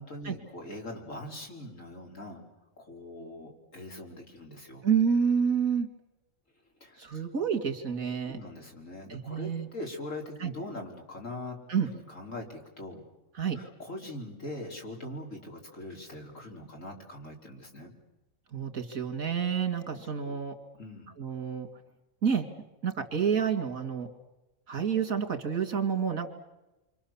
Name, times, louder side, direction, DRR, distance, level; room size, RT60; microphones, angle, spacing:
voice 1, 0.0-2.4 2.8-4.8 6.8-7.2 8.3-11.6 11.9-13.0 13.5-17.9 19.9-20.4 20.8-21.1, left 1 dB, 65° left, 0 dB, 4.4 m, -42 dB
voice 2, 4.8-5.9 7.0-8.4 9.1-9.7 10.4-10.5 11.7-11.9 13.4-13.6 18.5-20.5 21.2-21.7 22.2-22.5 22.8-24.1 24.7-26.3, right 7 dB, 80° right, 5 dB, 2.7 m, -28 dB
28.0 x 25.5 x 7.2 m, 1.0 s
omnidirectional pair, 1.4 m